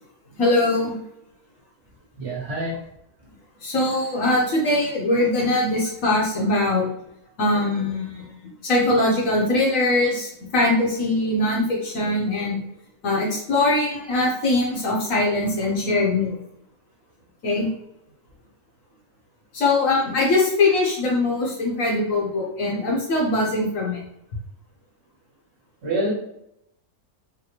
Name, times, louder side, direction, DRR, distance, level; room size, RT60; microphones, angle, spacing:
voice 1, 0.4-1.0 3.6-6.9 7.4-8.3 8.6-12.6 13.0-16.4 17.4-17.7 19.5-24.0, left 2 dB, 65° left, -3 dB, 1.3 m, -22 dB
voice 2, 2.2-2.8 25.8-26.1, right 1 dB, 50° right, -4 dB, 1.2 m, -26 dB
4.0 x 2.1 x 2.9 m, 0.76 s
omnidirectional pair, 1.6 m